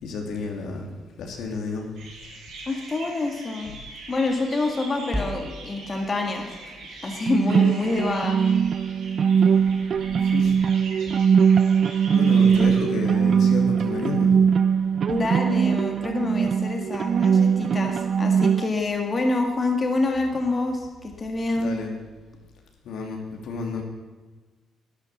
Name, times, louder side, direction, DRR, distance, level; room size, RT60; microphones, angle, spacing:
voice 1, 0.0-0.9 1.2-1.9 10.3-10.5 12.1-14.3 21.5-21.9 22.8-23.8, left 4 dB, 75° left, 1 dB, 2.8 m, -31 dB
sound 1, 2.0-12.9, right 3 dB, 85° right, 4.6 m, -42 dB
voice 2, 2.7-3.7 4.1-6.5 7.0-8.4 15.1-21.7, left 2 dB, 35° left, 2 dB, 1.9 m, -26 dB
sound 2, 5.1-9.4, equal, 5° right, 1.4 m, -39 dB
sound 3, 7.3-18.7, right 7 dB, 55° right, 0.5 m, -21 dB
12.0 x 9.7 x 7.2 m, 1.3 s
cardioid pair, 90°, 0 cm